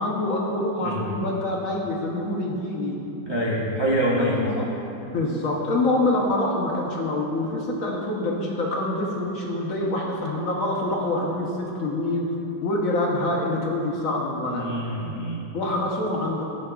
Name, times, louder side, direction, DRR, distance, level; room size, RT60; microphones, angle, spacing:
voice 1, 0.0-3.0 4.3-4.7 5.1-12.3 12.6-14.7 15.5-16.4, left 2 dB, 60° left, -2 dB, 1.0 m, -26 dB
voice 2, 3.3-4.4 14.4-15.4, right 1 dB, 35° right, -6 dB, 0.4 m, -25 dB
13.5 x 5.6 x 2.3 m, 3.0 s
omnidirectional pair, 2.0 m